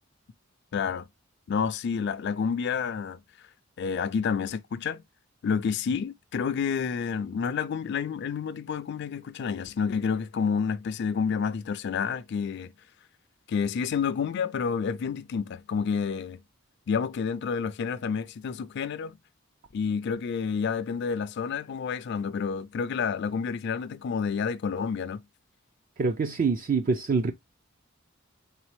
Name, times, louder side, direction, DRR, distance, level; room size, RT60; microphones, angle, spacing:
voice 1, 0.7-1.1 1.5-3.2 3.8-5.0 5.4-12.7 13.5-16.4 16.9-19.2 19.7-25.2, left 6 dB, 55° left, 0.4 m, -29 dB
voice 2, 26.0-27.3, right 4 dB, 40° right, 0.4 m, -25 dB
4.0 x 3.6 x 3.1 m
head